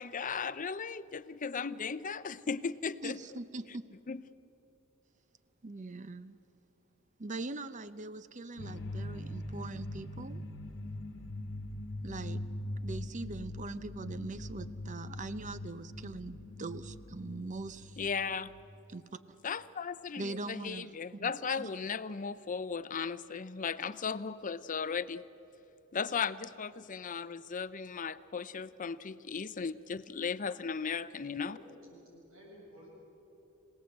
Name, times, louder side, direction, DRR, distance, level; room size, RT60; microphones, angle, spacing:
voice 1, 0.0-3.2 4.1-4.2 18.0-18.5 19.4-25.2 25.9-31.6, left 5 dB, 40° left, 14 dB, 0.6 m, -36 dB
voice 2, 3.0-3.9 5.6-6.4 7.2-10.4 12.0-12.4 12.8-18.0 18.9-19.4 20.2-21.7, right 3 dB, 35° right, 13 dB, 0.7 m, -42 dB
sound 1, 8.6-18.8, left 1 dB, 60° left, 1.3 m, -42 dB
voice 3, 31.5-32.9, equal, 75° right, -3 dB, 7.4 m, -54 dB
26.5 x 18.0 x 7.9 m, 2.9 s
head